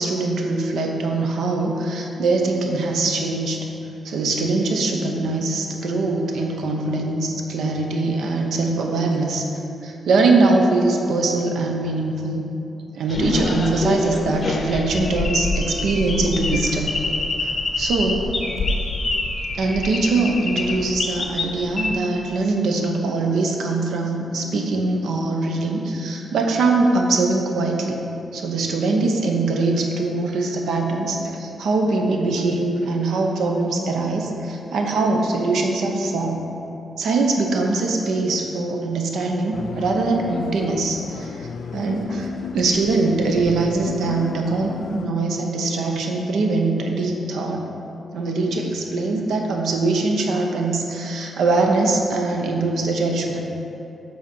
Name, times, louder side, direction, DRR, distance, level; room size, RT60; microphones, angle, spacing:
voice 1, 0.0-3.6 4.0-9.5 9.8-12.4 12.9-16.9 17.4-17.5 17.8-18.3 19.5-28.0 28.3-36.4 37.0-42.3 42.5-47.6 48.1-53.4, right 3 dB, 90° right, 2 dB, 0.9 m, -22 dB
sound 1, 13.1-21.9, left 2 dB, 35° left, 0.6 m, -26 dB
sound 2, 39.5-45.1, left 6 dB, 85° left, 0.3 m, -34 dB
7.8 x 4.1 x 6.1 m, 2.9 s
wide cardioid pair, 165°, 0 cm